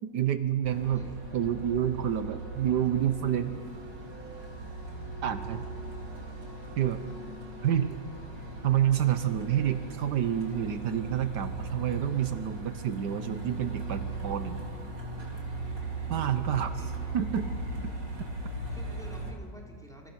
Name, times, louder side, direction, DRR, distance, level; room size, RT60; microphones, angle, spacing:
voice 1, 0.0-1.1 1.3-3.6 5.2-5.7 6.8-7.0 7.6-7.9 8.6-14.6 16.1-16.7 17.1-17.5, right 10 dB, 75° right, 10 dB, 1.5 m, -28 dB
Truck, 0.6-19.3, right 2 dB, 90° right, 4.1 m, -38 dB
voice 2, 0.8-1.2 6.0-6.4 7.9-8.0 16.6-17.2 18.7-20.1, right 1 dB, ahead, -1 dB, 3.6 m, -51 dB
27.5 x 27.0 x 5.9 m, 2.2 s
omnidirectional pair, 1.9 m